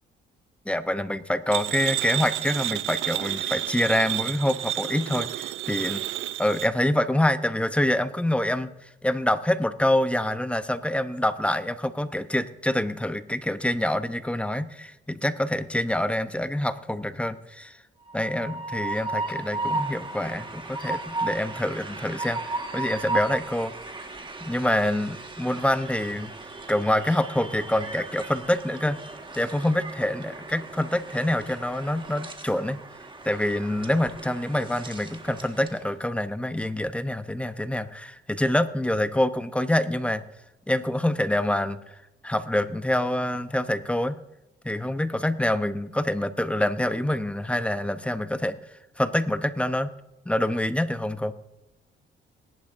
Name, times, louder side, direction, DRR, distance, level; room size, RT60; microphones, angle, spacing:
voice 1, 0.7-6.0 6.4-17.8 18.1-23.7 24.4-26.3 26.7-29.0 29.3-32.8 33.2-40.2 40.7-41.9 42.2-44.2 44.6-48.5 49.0-49.9 50.3-51.3, left 1 dB, 5° left, 11 dB, 0.7 m, -26 dB
sound 1, 1.5-6.7, right 14 dB, 85° right, 0.5 m, -30 dB
Train, 18.1-35.9, right 3 dB, 25° right, 1.6 m, -36 dB
20.5 x 11.0 x 2.6 m, 0.97 s
cardioid pair, 90°, 20 cm